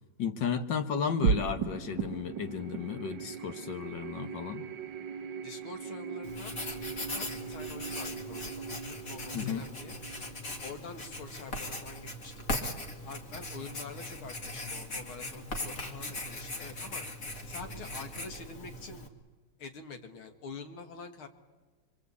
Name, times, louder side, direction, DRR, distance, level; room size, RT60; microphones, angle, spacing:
voice 1, 0.2-4.6 9.3-9.7, left 7 dB, 60° left, 8 dB, 1.8 m, -33 dB
sound 1, 1.2-11.9, right 6 dB, 65° right, 1.6 m, -37 dB
voice 2, 5.4-6.7 7.1-10.0 10.6-12.7 13.0-17.0 17.4-19.1 19.6-21.3, left 4 dB, 90° left, 6 dB, 2.7 m, -46 dB
Writing, 6.2-19.1, left 1 dB, 40° left, 2.6 m, -39 dB
25.5 x 23.5 x 8.4 m, 1.3 s
omnidirectional pair, 2.3 m